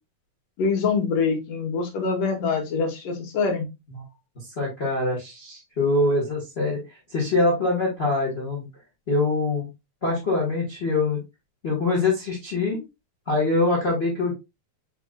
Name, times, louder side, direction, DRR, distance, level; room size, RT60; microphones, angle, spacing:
voice 1, 0.6-3.7, left 5 dB, 65° left, 3 dB, 1.9 m, -24 dB
voice 2, 4.6-6.8 7.1-8.7 9.1-9.7 10.0-11.2 11.6-12.8 13.3-14.3, left 2 dB, 40° left, -4 dB, 0.9 m, -24 dB
5.8 x 3.7 x 2.2 m, 0.23 s
omnidirectional pair, 3.6 m